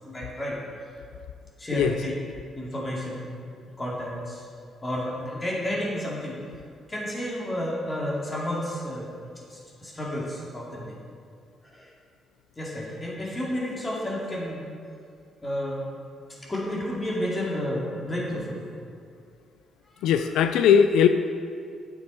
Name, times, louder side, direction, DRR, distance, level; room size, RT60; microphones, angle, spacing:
voice 1, 0.1-0.9 1.6-2.1 2.5-3.3 3.6-4.5 4.8-6.4 6.9-9.1 9.5-11.0 11.6-11.9 12.6-14.6 15.4-15.9 16.3-18.7 20.0-20.3, left 1 dB, 25° left, -4 dB, 2.4 m, -31 dB
voice 2, 20.0-21.1, left 8 dB, 90° left, 8 dB, 0.3 m, -19 dB
9.6 x 7.1 x 4.5 m, 2.3 s
cardioid pair, 90°, 0 cm